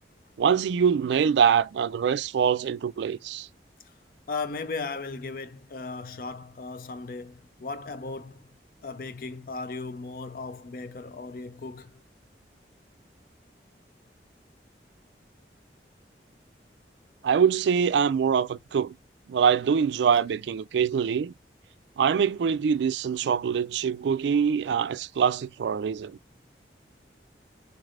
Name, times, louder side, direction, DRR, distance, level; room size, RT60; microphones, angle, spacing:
voice 1, 0.4-3.5 17.2-18.9 19.3-21.3 22.0-26.2, right 7 dB, 80° right, 0.3 m, -24 dB
voice 2, 4.3-8.5 8.8-12.0, left 3 dB, 50° left, 0.4 m, -36 dB
4.0 x 3.2 x 2.5 m
head